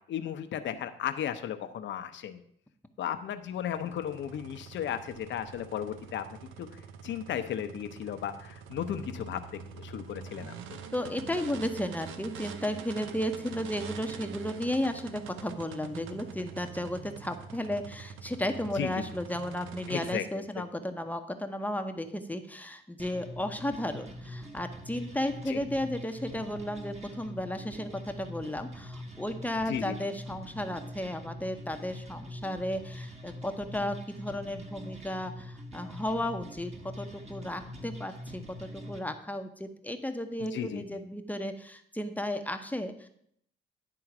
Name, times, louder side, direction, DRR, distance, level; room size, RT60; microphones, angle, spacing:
voice 1, 0.1-2.4 3.0-6.2 6.6-6.7 7.0-9.4 9.7-10.8 18.8-18.9 19.9-20.4 25.5-25.6 29.7-30.0 40.5-40.8, left 9 dB, 70° left, 9 dB, 0.8 m, -35 dB
sound 1, 3.5-20.1, right 6 dB, 85° right, 0.7 m, -45 dB
voice 2, 10.9-36.7 37.0-43.1, left 1 dB, 10° left, 6 dB, 0.8 m, -34 dB
sound 2, 23.0-39.0, left 1 dB, 35° right, 1.5 m, -44 dB
11.0 x 3.9 x 6.0 m, 0.69 s
cardioid pair, 90°, 20 cm